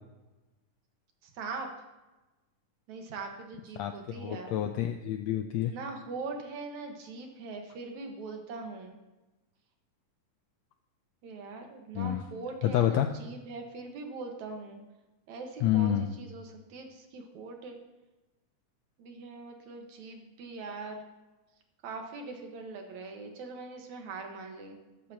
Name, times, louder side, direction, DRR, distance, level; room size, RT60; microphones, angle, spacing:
voice 1, 1.4-1.7 2.9-4.5 5.6-9.0 11.2-14.8 15.3-17.8 19.0-21.1 21.8-24.8, right 3 dB, 65° right, 3 dB, 2.6 m, -41 dB
voice 2, 3.8-5.7 11.9-12.2 12.6-13.1 15.6-16.1, left 11 dB, 90° left, 7 dB, 1.5 m, -28 dB
14.0 x 13.0 x 2.9 m, 1.1 s
omnidirectional pair, 3.6 m